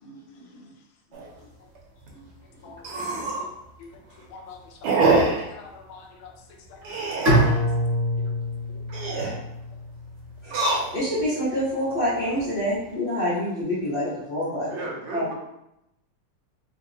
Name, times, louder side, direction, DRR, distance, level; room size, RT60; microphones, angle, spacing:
voice 1, 0.0-0.5 2.1-2.2 2.6-2.7 10.4-10.6 10.9-15.2, equal, 50° left, -8 dB, 0.6 m, -27 dB
sound 1, 1.1-1.3 1.8-1.9 2.1-2.2 2.8-3.5 3.9-4.2 4.8-5.5 6.8-7.6 8.8-9.4 10.4-11.2 11.9-12.4, right 3 dB, 85° right, 1.7 m, -24 dB
voice 2, 2.6-3.1 3.4-3.5 3.8-4.0 4.3-5.0 5.3-6.8 7.1-7.3 8.2-8.3 8.7-9.3, left 5 dB, 75° left, 0 dB, 1.3 m, -46 dB
Bowed string instrument, 7.2-10.3, equal, 10° right, 1.0 m, -24 dB
voice 3, 14.7-15.3, right 3 dB, 65° right, -2 dB, 1.5 m, -35 dB
4.6 x 2.8 x 2.7 m, 0.85 s
omnidirectional pair, 2.4 m